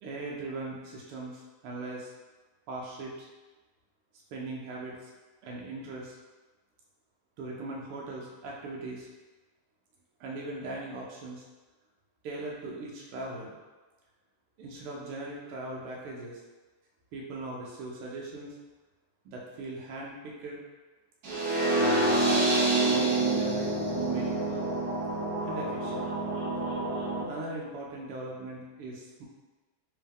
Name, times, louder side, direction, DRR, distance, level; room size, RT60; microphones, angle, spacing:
voice 1, 0.0-2.1 2.7-3.3 4.3-5.0 5.4-6.2 7.4-9.1 10.2-11.5 12.2-13.6 14.6-16.4 17.1-18.5 19.2-20.6 22.9-24.7 25.4-26.1 27.3-29.3, right 2 dB, 90° right, -2 dB, 1.6 m, -39 dB
sound 1, 21.2-27.2, right 2 dB, 55° right, 1.1 m, -27 dB
3.5 x 3.4 x 3.5 m, 1.2 s
omnidirectional pair, 2.4 m